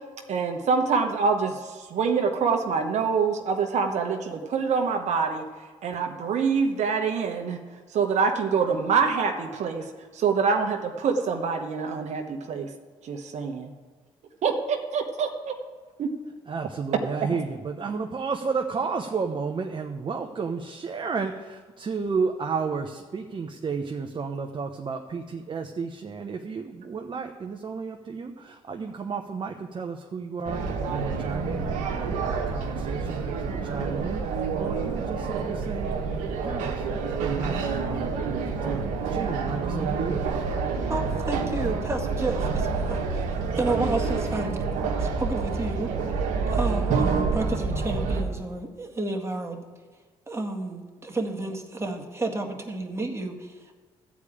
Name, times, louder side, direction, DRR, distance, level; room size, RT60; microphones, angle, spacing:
voice 1, 0.3-5.4 5.8-7.6 7.9-9.8 10.1-12.7 13.0-13.7 14.4-15.6 16.0-16.1, right 5 dB, 65° right, 4 dB, 1.1 m, -25 dB
voice 2, 16.5-35.9 36.4-36.9 37.2-37.6 37.9-40.2, right 5 dB, 40° right, 3 dB, 0.9 m, -32 dB
sound 1, 30.4-48.2, right 4 dB, 85° right, 1.4 m, -28 dB
voice 3, 40.9-43.1 43.5-44.6 45.0-45.9 46.5-49.6 50.3-53.7, right 2 dB, 20° right, 2 dB, 1.9 m, -31 dB
13.0 x 5.0 x 8.6 m, 1.5 s
supercardioid pair, 65°, 13 cm